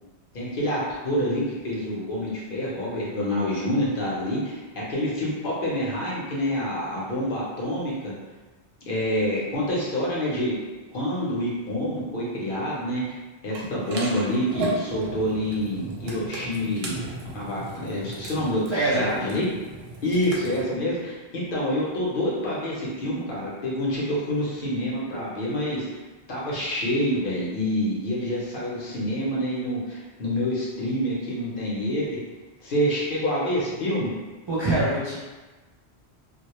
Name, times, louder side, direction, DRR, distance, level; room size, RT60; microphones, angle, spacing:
voice 1, 0.3-8.1 8.9-10.6 10.9-13.0 13.4-17.0 17.3-19.5 20.0-25.9 26.3-32.2 32.6-34.1, equal, 55° left, -6 dB, 0.8 m, -27 dB
sound 1, 13.5-20.6, right 2 dB, 70° right, 0.8 m, -36 dB
voice 2, 18.7-19.0 34.5-35.2, right 2 dB, 40° right, -10 dB, 0.4 m, -23 dB
2.2 x 2.0 x 2.9 m, 1.2 s
omnidirectional pair, 1.1 m